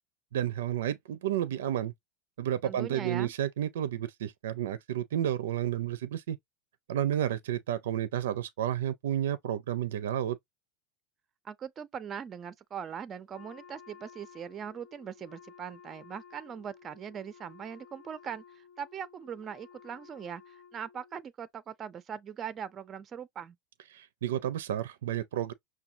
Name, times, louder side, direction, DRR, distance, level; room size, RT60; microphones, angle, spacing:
voice 1, 0.3-1.9 2.4-6.4 6.9-10.4 23.9-25.5, right 11 dB, 90° right, 0.4 m, -31 dB
voice 2, 2.6-3.3 11.4-23.6, right 8 dB, 30° right, 0.5 m, -41 dB
Wind instrument woodwind instrument, 13.3-21.2, left 7 dB, 50° left, 0.9 m, -54 dB
5.9 x 2.2 x 2.7 m
supercardioid pair, 130°, 0 cm